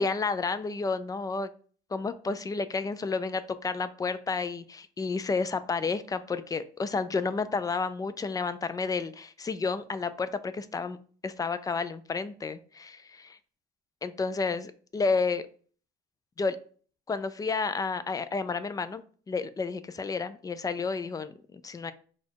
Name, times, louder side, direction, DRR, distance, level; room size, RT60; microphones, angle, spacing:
voice 1, 0.0-1.5 1.9-11.0 11.2-13.4 14.0-15.4 16.4-16.6 17.1-21.9, left 4 dB, 20° left, 12 dB, 0.3 m, -31 dB
4.2 x 2.3 x 4.5 m, 0.43 s
cardioid pair, 110°, 17 cm